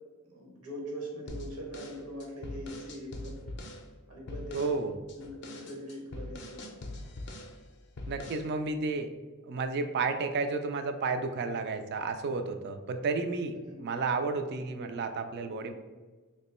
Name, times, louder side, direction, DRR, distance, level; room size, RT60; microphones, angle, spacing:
voice 1, 0.2-3.4 4.1-4.7 5.1-6.6 13.5-13.8, equal, 70° right, -1 dB, 1.0 m, -42 dB
sound 1, 1.3-3.9 4.3-4.8 5.1-7.6 8.0-8.5, left 1 dB, 50° left, 0.4 m, -42 dB
voice 2, 4.5-4.9 8.1-9.1 9.4-15.7, right 4 dB, 50° right, 8 dB, 0.3 m, -32 dB
2.9 x 2.1 x 4.1 m, 1.3 s
head